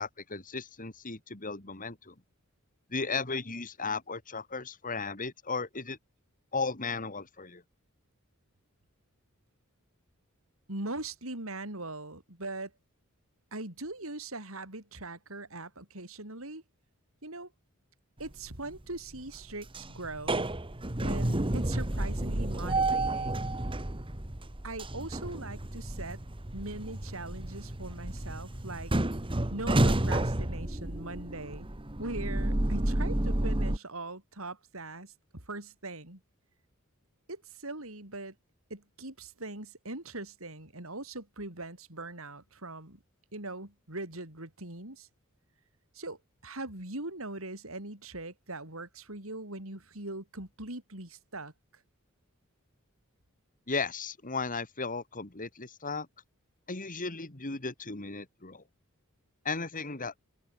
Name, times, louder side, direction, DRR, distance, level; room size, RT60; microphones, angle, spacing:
voice 1, 0.0-2.1 2.9-6.0 6.5-7.6 53.7-56.1 56.7-58.6 59.4-60.1, left 4 dB, 40° left, 2.8 m, -35 dB
voice 2, 10.7-12.7 13.5-16.6 17.2-17.5 18.2-20.5 21.0-23.5 24.6-26.2 26.5-28.9 29.5-31.7 32.0-36.2 37.3-38.3 38.7-43.0 43.3-45.1 45.9-51.5, right 2 dB, 70° right, 6.0 m, -41 dB
sound 1, 18.2-18.8 19.1-33.8, right 1 dB, 25° right, 1.5 m, -31 dB
open air
head